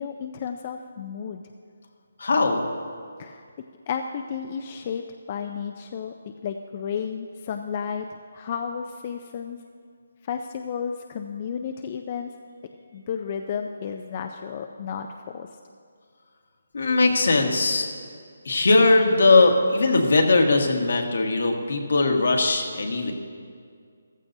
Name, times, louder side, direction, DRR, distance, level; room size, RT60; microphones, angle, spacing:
voice 1, 0.0-1.4 3.2-3.4 3.9-8.1 8.3-9.6 10.2-12.3 12.9-15.5, left 7 dB, 35° left, 5 dB, 0.4 m, -32 dB
voice 2, 2.2-2.6 16.7-17.9 18.4-23.1, left 3 dB, 70° left, 3 dB, 1.5 m, -20 dB
14.5 x 13.0 x 2.7 m, 2.1 s
hypercardioid pair, 160°, 0 cm